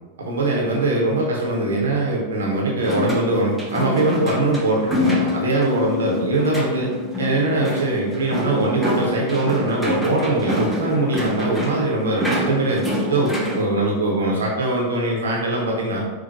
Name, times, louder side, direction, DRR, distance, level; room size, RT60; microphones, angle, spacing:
voice 1, 0.2-6.9 7.2-12.8 13.1-16.0, right 2 dB, 65° right, -2 dB, 0.7 m, -21 dB
sound 1, 2.8-13.6, left 1 dB, ahead, 0.7 m, -28 dB
Bass guitar, 4.9-11.2, left 10 dB, 40° left, 0.5 m, -31 dB
4.4 x 2.1 x 2.8 m, 1.3 s
figure-of-eight pair, 90°, 0 cm